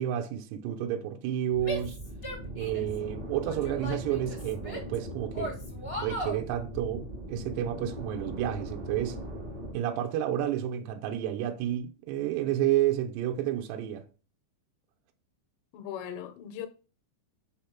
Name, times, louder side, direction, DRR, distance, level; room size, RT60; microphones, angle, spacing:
voice 1, 0.0-2.0 2.6-5.5 6.0-9.2 9.7-14.0, right 11 dB, 80° right, 2.6 m, -30 dB
sound 1, 1.5-9.7, equal, 50° right, 1.2 m, -40 dB
Female speech woman speaking / Yell, 1.6-3.0 3.4-5.0 5.3-6.4, equal, 50° left, 0.6 m, -37 dB
voice 2, 15.7-16.7, left 10 dB, 80° left, 2.7 m, -38 dB
6.5 x 5.0 x 5.8 m
omnidirectional pair, 5.3 m